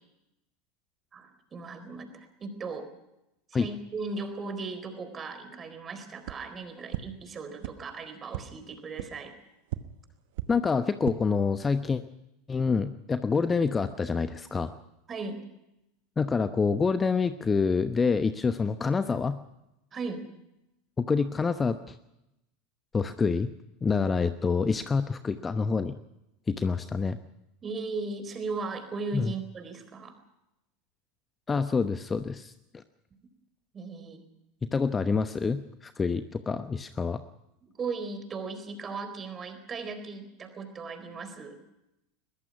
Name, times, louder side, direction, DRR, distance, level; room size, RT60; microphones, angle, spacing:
voice 1, 1.1-2.9 3.5-9.3 15.1-15.4 19.9-20.2 27.6-30.2 33.7-34.2 37.6-41.6, right 4 dB, 25° right, 9 dB, 4.2 m, -37 dB
sound 1, 6.2-6.3 6.9-7.0 7.6-7.7 8.3-8.4 9.0-9.1 9.7-9.8 10.3-10.4 10.9-11.1, right 17 dB, 55° right, 1.2 m, -34 dB
voice 2, 10.5-12.0 12.5-14.7 16.2-19.4 21.0-22.0 22.9-23.5 23.8-26.0 26.5-27.2 29.1-29.3 31.5-32.8 34.6-37.2, left 5 dB, 20° left, 11 dB, 0.9 m, -27 dB
22.5 x 21.0 x 6.0 m, 0.89 s
figure-of-eight pair, 80°, 0 cm